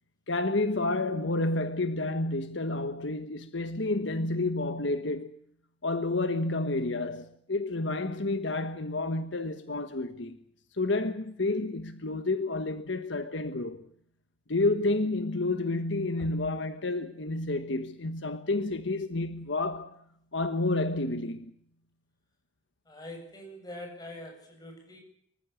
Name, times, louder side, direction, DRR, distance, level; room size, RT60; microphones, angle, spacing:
voice 1, 0.3-5.3 5.8-10.4 10.7-13.9 14.5-20.0 20.3-21.5, left 2 dB, 75° left, 1.4 m, -30 dB
voice 2, 22.9-25.0, left 1 dB, 20° left, 7.7 m, -44 dB
25.0 x 15.0 x 8.4 m
head